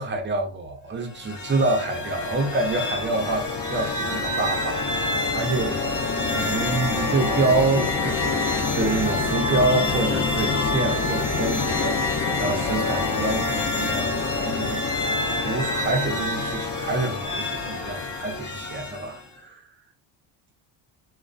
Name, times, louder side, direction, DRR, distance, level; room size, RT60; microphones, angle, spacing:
voice 1, 0.0-5.9 6.3-19.6, right 3 dB, 25° right, 0.6 m, -27 dB
sound 1, 1.1-19.3, left 3 dB, 40° left, 0.9 m, -26 dB
2.2 x 2.2 x 2.5 m
supercardioid pair, 95°, 49 cm